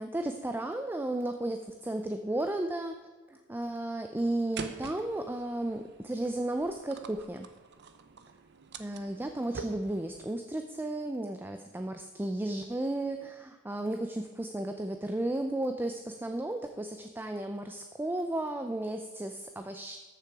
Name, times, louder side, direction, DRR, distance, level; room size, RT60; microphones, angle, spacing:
voice 1, 0.0-3.0 3.3-7.5 8.8-20.0, right 1 dB, 10° right, 6 dB, 0.4 m, -34 dB
sound 1, 4.6-10.3, right 5 dB, 50° right, 0.7 m, -46 dB
13.5 x 6.7 x 4.7 m, 1.4 s
head